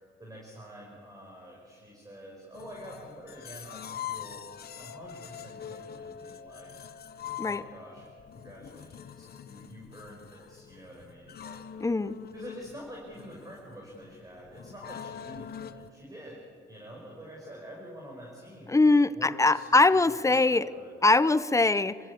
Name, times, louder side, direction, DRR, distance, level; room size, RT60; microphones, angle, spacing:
voice 1, 0.2-4.5 4.8-6.7 7.4-8.1 8.3-11.7 12.3-18.8 19.1-19.8 20.2-20.9, equal, 15° right, -3 dB, 5.6 m, -47 dB
sound 1, 2.5-15.9, left 9 dB, 55° left, 1.0 m, -43 dB
voice 2, 11.8-12.2 18.7-20.7 21.0-22.0, left 3 dB, 15° left, 16 dB, 0.7 m, -22 dB
26.0 x 15.5 x 8.5 m, 2.2 s
cardioid pair, 90°, 20 cm